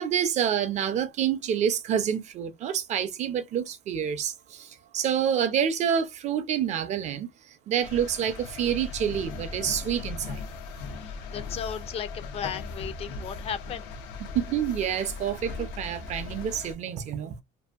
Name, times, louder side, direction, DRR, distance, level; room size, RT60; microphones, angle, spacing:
voice 1, 0.0-7.3 7.7-10.4 14.3-17.4, right 8 dB, 45° right, 0.5 m, -28 dB
sound 1, 7.8-16.7, left 4 dB, 90° left, 0.6 m, -38 dB
voice 2, 10.9-13.9, left 8 dB, 35° left, 0.4 m, -36 dB
2.6 x 2.4 x 2.3 m
cardioid pair, 150°, 17 cm